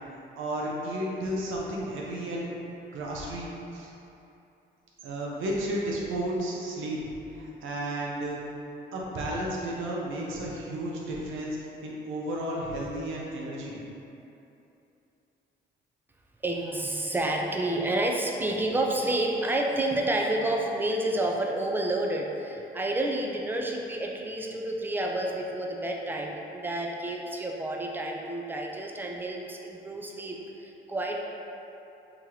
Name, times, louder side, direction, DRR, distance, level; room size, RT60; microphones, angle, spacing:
voice 1, 0.4-2.6 2.9-3.9 5.0-7.0 7.3-8.4 8.9-13.7, right 1 dB, 85° right, -3 dB, 0.7 m, -33 dB
voice 2, 16.4-31.2, right 1 dB, 10° right, 0 dB, 0.4 m, -29 dB
3.0 x 2.9 x 3.7 m, 2.9 s
cardioid pair, 90°, 20 cm